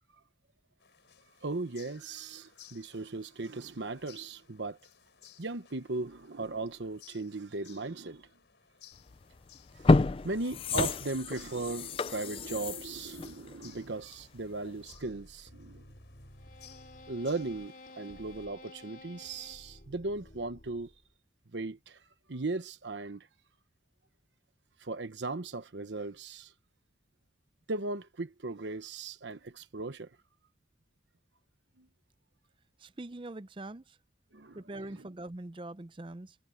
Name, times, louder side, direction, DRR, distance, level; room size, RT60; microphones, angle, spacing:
sound 1, 0.8-18.5, left 9 dB, 85° left, 4.4 m, -60 dB
voice 1, 1.4-4.8 5.4-8.3 9.7-9.9 10.2-15.8 17.1-20.9 21.5-22.0 22.3-23.3 24.8-26.5 27.7-30.1 31.8-31.9 34.3-35.0, right 3 dB, 85° right, 1.0 m, -37 dB
sound 2, 9.1-9.2 9.7-14.4 14.8-14.9, left 3 dB, 30° left, 0.4 m, -29 dB
sound 3, 14.9-21.2, left 2 dB, 50° left, 3.3 m, -53 dB
voice 2, 32.8-34.0 34.5-36.4, right 2 dB, 30° right, 0.6 m, -43 dB
head